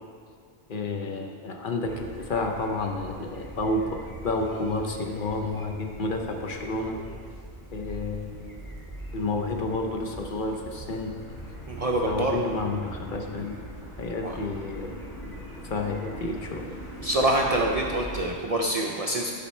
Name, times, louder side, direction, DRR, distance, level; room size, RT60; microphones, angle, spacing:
voice 1, 0.7-7.0 7.7-8.7 9.1-11.1 12.1-13.6 14.0-15.0 15.3-16.7, left 2 dB, 55° left, 3 dB, 0.8 m, -30 dB
sound 1, 1.8-18.3, right 1 dB, 20° left, 1.2 m, -42 dB
voice 2, 11.7-12.4 14.2-14.4 17.0-19.3, right 1 dB, 50° right, 0 dB, 0.5 m, -25 dB
10.0 x 4.3 x 4.2 m, 2.1 s
omnidirectional pair, 1.1 m